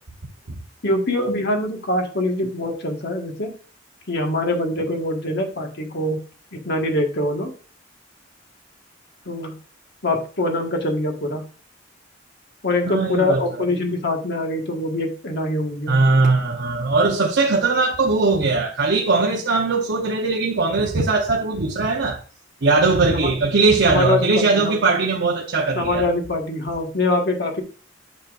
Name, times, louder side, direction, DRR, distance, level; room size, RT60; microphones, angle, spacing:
voice 1, 0.8-3.5 4.1-6.2 6.5-7.5 9.3-9.5 10.0-11.4 12.6-16.0 23.1-23.3 23.9-24.7 25.7-27.6, left 2 dB, 60° left, 1.6 m, -24 dB
voice 2, 12.8-13.7 15.9-22.2 22.6-26.0, right 3 dB, 60° right, 0.8 m, -20 dB
9.4 x 5.9 x 2.5 m
head